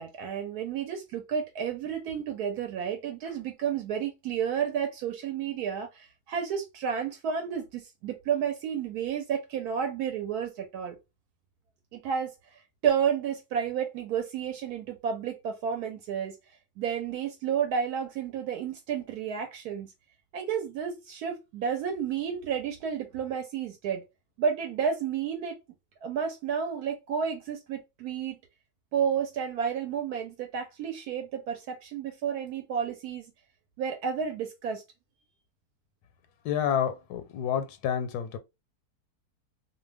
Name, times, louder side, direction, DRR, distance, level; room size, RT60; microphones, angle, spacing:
voice 1, 0.0-11.0 11.9-12.3 12.8-16.4 16.8-19.9 20.3-24.0 24.4-25.6 26.0-28.4 28.9-33.3 33.8-34.8, right 7 dB, 80° right, 1.1 m, -31 dB
voice 2, 36.4-38.4, left 9 dB, 85° left, 1.1 m, -29 dB
2.6 x 2.2 x 3.3 m
omnidirectional pair, 1.7 m